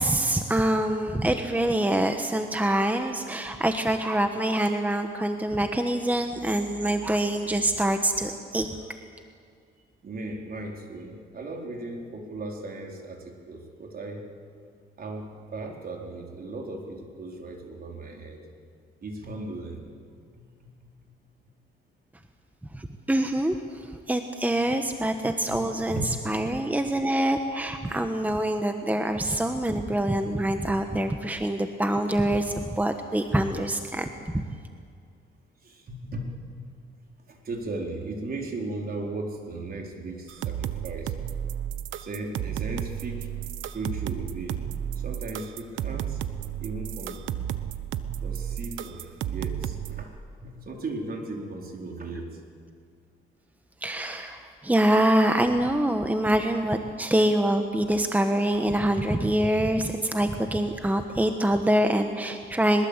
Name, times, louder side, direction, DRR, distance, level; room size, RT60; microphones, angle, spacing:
voice 1, 0.0-8.7 22.7-34.5 53.8-62.9, right 1 dB, 10° right, 6 dB, 1.4 m, -25 dB
voice 2, 10.0-14.3 15.0-18.4 19.0-20.0 20.3-20.9 25.5-26.1 35.6-36.7 37.3-41.2 42.0-43.3 43.7-44.6 45.0-46.2 46.6-47.3 48.2-50.1 50.4-52.4, right 2 dB, 50° right, 1 dB, 4.2 m, -37 dB
sound 1, 40.3-50.0, right 10 dB, 80° right, 1.0 m, -33 dB
22.5 x 21.0 x 8.2 m, 2.2 s
cardioid pair, 90°, 20 cm